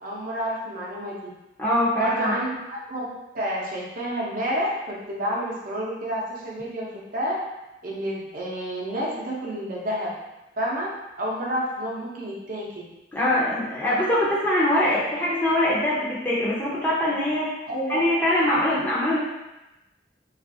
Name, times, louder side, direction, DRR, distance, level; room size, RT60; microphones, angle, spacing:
voice 1, 0.0-1.3 2.0-7.4 7.8-10.1 10.6-10.9 11.2-12.9 17.7-18.0, equal, 50° right, -5 dB, 0.7 m, -29 dB
voice 2, 1.6-2.3 13.1-17.5 17.9-19.2, left 1 dB, 10° left, -8 dB, 0.6 m, -23 dB
3.0 x 2.4 x 2.6 m, 0.98 s
head